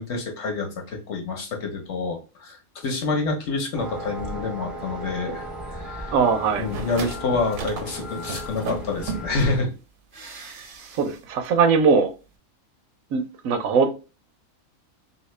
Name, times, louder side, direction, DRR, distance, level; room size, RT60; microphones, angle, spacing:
voice 1, 0.0-6.1 6.6-9.7 10.1-10.5, left 3 dB, 60° left, 3 dB, 1.0 m, -28 dB
sound 1, 3.7-9.6, equal, ahead, 0.4 m, -36 dB
voice 2, 6.1-6.7 11.0-12.1 13.1-13.9, right 5 dB, 80° right, 7 dB, 1.0 m, -20 dB
sound 2, 6.5-9.5 10.1-11.2 11.4-11.5, right 4 dB, 55° right, 0.6 m, -35 dB
2.8 x 2.8 x 3.1 m, 0.31 s
omnidirectional pair, 1.5 m